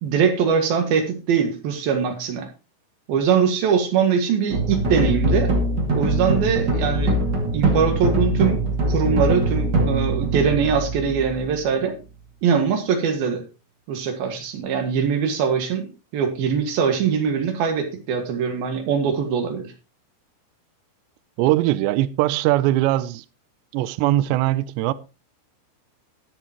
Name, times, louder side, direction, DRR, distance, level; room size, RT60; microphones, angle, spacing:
voice 1, 0.0-2.5 3.1-5.5 5.9-7.2 7.5-8.6 8.9-12.0 12.4-13.4 13.9-15.9 16.1-19.7, right 6 dB, 60° right, 3.1 m, -22 dB
sound 1, 4.5-11.8, right 1 dB, 40° right, 1.5 m, -22 dB
voice 2, 21.4-23.3 23.7-24.9, right 15 dB, 90° right, 2.5 m, -20 dB
20.5 x 7.1 x 3.0 m
omnidirectional pair, 5.8 m